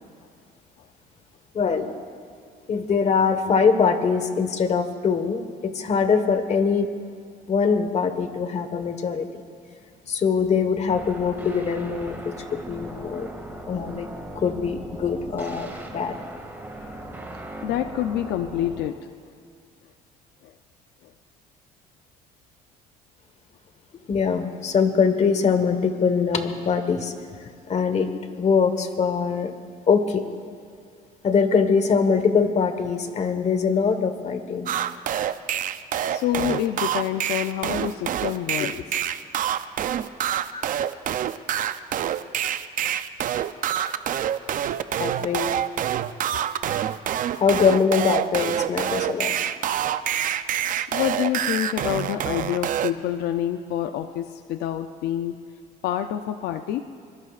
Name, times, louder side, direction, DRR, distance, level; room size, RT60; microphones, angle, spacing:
voice 1, 1.5-1.9 2.7-6.9 7.5-9.3 10.1-13.3 13.7-14.1 14.3-16.2 24.1-27.1 27.7-28.1 28.4-29.5 29.9-30.2 31.2-34.7 38.6-38.7 40.5-40.7 45.0-45.5 47.4-49.3, left 5 dB, 40° left, 8 dB, 1.4 m, -22 dB
sound 1, 10.9-18.9, right 1 dB, 10° right, 2.2 m, -38 dB
voice 2, 17.6-19.0 20.4-20.5 36.0-38.8 45.3-45.4 50.9-55.4 55.8-56.9, left 11 dB, 80° left, 8 dB, 0.6 m, -27 dB
sound 2, 34.7-52.9, right 10 dB, 55° right, 0.6 m, -26 dB
25.5 x 21.5 x 2.5 m, 2.2 s
cardioid pair, 110°, 17 cm